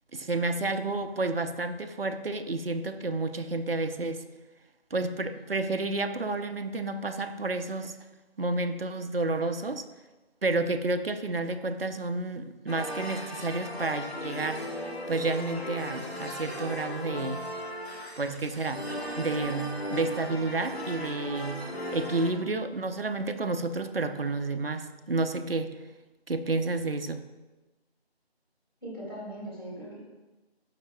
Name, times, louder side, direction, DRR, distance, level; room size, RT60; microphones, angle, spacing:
voice 1, 0.1-4.2 4.9-8.0 8.4-9.8 10.4-14.6 15.1-17.4 18.2-18.9 19.1-21.6 21.9-25.8 26.3-27.2, right 3 dB, 65° right, 9 dB, 0.6 m, -30 dB
sound 1, 12.7-22.3, equal, 75° left, 1.7 m, -37 dB
voice 2, 28.8-30.0, right 1 dB, 20° left, -9 dB, 2.0 m, -39 dB
11.5 x 5.8 x 2.2 m, 1.2 s
figure-of-eight pair, 180°, 32 cm